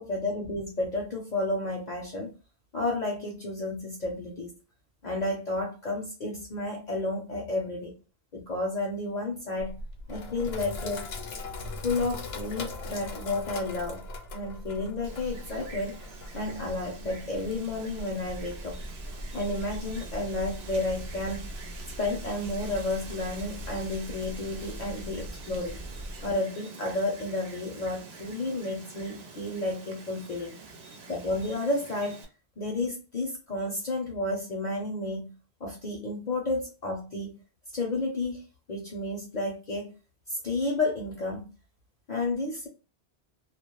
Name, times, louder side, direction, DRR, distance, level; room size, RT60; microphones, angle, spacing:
voice 1, 0.0-2.3 2.7-4.5 5.0-7.9 8.3-9.8 10.1-11.1 11.8-14.0 14.3-16.0 16.3-18.8 19.3-21.5 22.0-25.8 26.2-30.6 31.1-32.2 32.6-35.3 35.6-37.4 37.7-39.9 40.3-41.5 42.1-42.7, left 2 dB, 55° left, 1 dB, 0.6 m, -31 dB
Sink (filling or washing), 9.6-20.6, left 2 dB, 80° left, 0.8 m, -40 dB
Wind, 15.0-32.2, right 4 dB, 85° right, 0.9 m, -47 dB
sound 1, 18.2-26.3, equal, 60° right, 0.6 m, -41 dB
2.2 x 2.0 x 2.9 m, 0.33 s
omnidirectional pair, 1.0 m